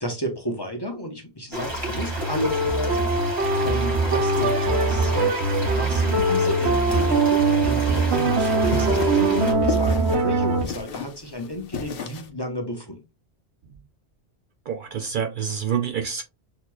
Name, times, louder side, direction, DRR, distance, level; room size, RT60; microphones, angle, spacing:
voice 1, 0.0-3.1 3.6-5.4 5.7-13.0, equal, 25° left, 0.8 m, -32 dB
sound 1, 1.5-9.5, equal, 25° right, 1.7 m, -33 dB
sound 2, 1.6-10.7, right 3 dB, 85° right, 1.0 m, -22 dB
sound 3, 6.9-12.3, left 7 dB, 65° left, 0.9 m, -35 dB
voice 2, 14.7-16.2, right 8 dB, 60° right, 0.6 m, -27 dB
6.5 x 2.9 x 2.2 m
omnidirectional pair, 1.1 m